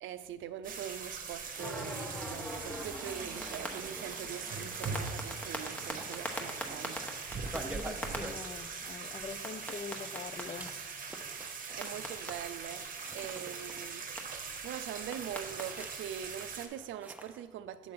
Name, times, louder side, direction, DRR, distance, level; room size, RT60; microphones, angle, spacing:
voice 1, 0.0-7.1 11.4-17.9, right 10 dB, 80° right, 0.4 m, -43 dB
sound 1, 0.6-16.7, right 5 dB, 45° right, 0.9 m, -41 dB
sound 2, 1.2-1.7 2.1-9.8 10.2-17.4, right 2 dB, 10° right, 0.7 m, -50 dB
sound 3, 1.6-8.2 9.4-10.4 11.8-12.3 14.2-14.3 15.1-15.6, equal, 5° left, 1.0 m, -41 dB
voice 2, 7.5-10.7, left 5 dB, 35° left, 0.4 m, -44 dB
7.6 x 3.7 x 5.7 m
cardioid pair, 90°, 20 cm